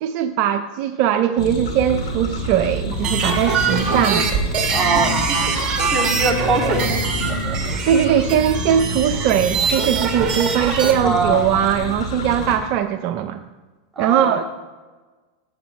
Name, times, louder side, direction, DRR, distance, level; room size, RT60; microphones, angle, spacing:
voice 1, 0.0-4.3 7.9-13.4 14.0-14.4, right 10 dB, 50° right, 9 dB, 0.5 m, -20 dB
sound 1, 1.4-12.6, left 1 dB, 85° left, 2.3 m, -28 dB
sound 2, 2.4-2.9 3.6-4.3 4.7-5.1 5.8-7.4 8.7-8.8, right 1 dB, 10° left, 2.8 m, -33 dB
sound 3, 2.9-10.9, right 5 dB, 35° right, 1.6 m, -23 dB
voice 2, 4.7-7.0 11.0-11.4 14.0-14.4, right 3 dB, 15° right, -1 dB, 2.4 m, -23 dB
12.5 x 8.0 x 3.1 m, 1.3 s
hypercardioid pair, 100°, 3 cm